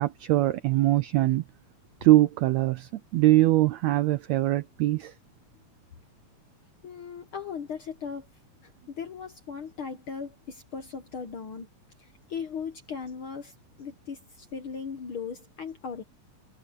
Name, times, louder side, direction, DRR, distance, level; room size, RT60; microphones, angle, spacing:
voice 1, 0.0-1.4 2.0-5.1, right 16 dB, 80° right, 1.5 m, -22 dB
voice 2, 6.8-8.3 8.9-11.7 12.0-16.0, left 6 dB, 60° left, 1.5 m, -38 dB
omnidirectional pair, 3.7 m